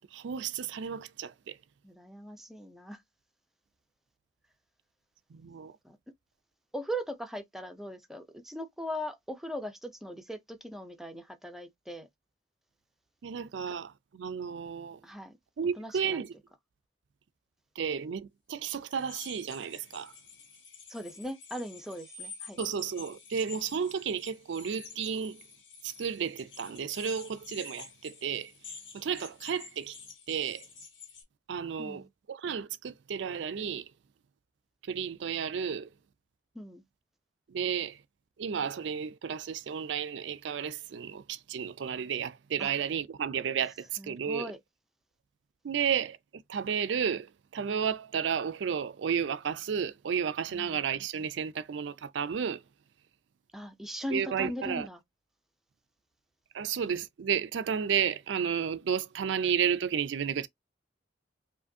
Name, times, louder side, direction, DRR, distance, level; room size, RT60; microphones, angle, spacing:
voice 1, 0.1-1.5 5.3-5.7 13.2-15.0 15.6-16.3 17.8-20.1 22.6-25.4 25.8-29.9 30.3-30.6 31.5-32.0 32.3-33.8 34.9-35.9 37.5-38.0 38.4-43.7 44.1-44.5 45.6-52.6 54.1-54.9 56.5-60.5, right 7 dB, 75° right, 0.4 m, -32 dB
voice 2, 1.8-3.0 5.8-6.0 6.7-12.1 13.7-13.8 15.0-15.4 15.7-16.2 20.9-22.6 31.8-32.1 36.5-36.8 42.6-42.7 44.0-44.6 50.5-50.8 53.5-55.0, equal, ahead, 0.4 m, -39 dB
sound 1, 18.9-31.2, left 5 dB, 85° left, 1.7 m, -49 dB
4.9 x 2.6 x 2.6 m
head